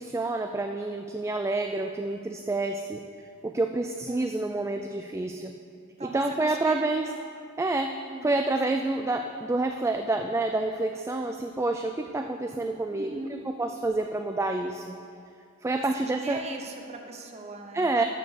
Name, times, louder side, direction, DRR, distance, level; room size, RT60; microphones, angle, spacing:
voice 1, 0.0-3.0 3.4-5.5 6.0-7.1 7.6-7.9 8.2-15.0 15.6-16.4 17.7-18.0, right 2 dB, 15° right, 5 dB, 0.3 m, -28 dB
voice 2, 6.0-6.7 7.0-7.2 8.1-8.4 12.9-13.4 15.8-18.0, right 2 dB, 30° right, 3 dB, 0.8 m, -40 dB
12.0 x 4.5 x 6.7 m, 2.4 s
head